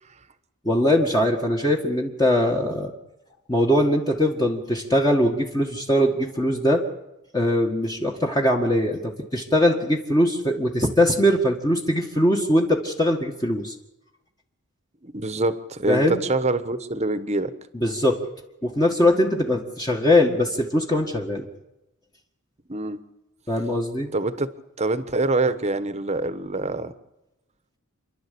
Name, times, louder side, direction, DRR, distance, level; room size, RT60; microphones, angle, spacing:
voice 1, 0.6-2.9 3.5-6.8 7.3-13.8 15.9-16.2 17.7-18.2 18.6-21.5 23.5-24.1, left 1 dB, 15° left, 0 dB, 1.8 m, -21 dB
voice 2, 15.0-17.5 22.7-23.0 24.1-24.5 24.8-26.9, right 2 dB, 30° right, 12 dB, 1.2 m, -25 dB
29.0 x 11.5 x 8.5 m, 0.95 s
head